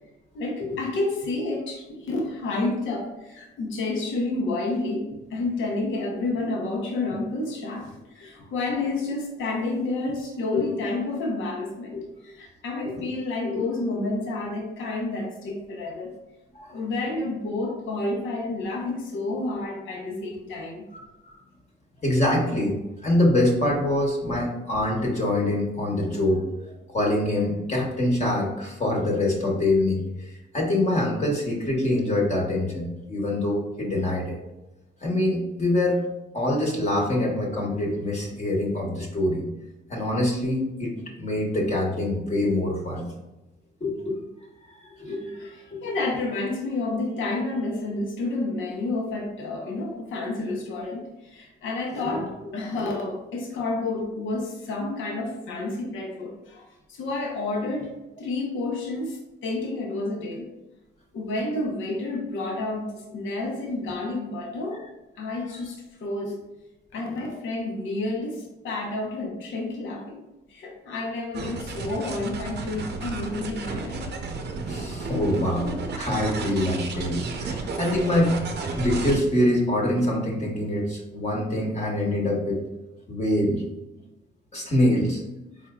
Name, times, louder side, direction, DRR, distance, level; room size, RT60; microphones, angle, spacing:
voice 1, 0.3-16.1 16.7-20.8 24.3-24.4 45.3-60.5 61.1-64.8 65.2-66.3 66.9-70.2 70.5-74.1, left 2 dB, 75° left, 0 dB, 1.0 m, -30 dB
voice 2, 22.0-26.4 26.9-34.4 35.0-36.0 36.3-39.4 39.9-43.0 43.8-44.2 44.7-45.9 74.7-78.3 78.7-82.6 83.1-83.6 84.5-85.2, left 1 dB, 35° left, -2 dB, 1.2 m, -25 dB
sound 1, 71.3-79.2, right 3 dB, 55° right, 0.6 m, -32 dB
4.3 x 3.6 x 2.3 m, 0.99 s
cardioid pair, 90°, 20 cm